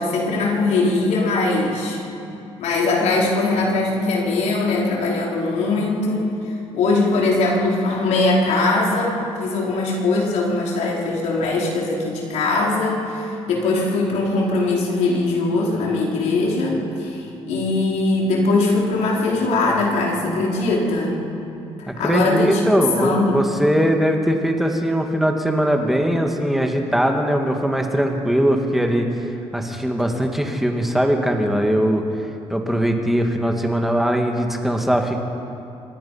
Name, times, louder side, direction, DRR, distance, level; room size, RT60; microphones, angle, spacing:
voice 1, 0.0-2.0 2.6-6.3 6.7-21.2 21.8-22.6 23.0-23.3 25.9-26.0, left 2 dB, 90° left, -3 dB, 4.6 m, -21 dB
voice 2, 21.9-29.1 29.5-32.0 32.5-35.2, equal, ahead, 3 dB, 2.0 m, -20 dB
26.0 x 20.0 x 5.7 m, 2.8 s
cardioid pair, 140°, 12 cm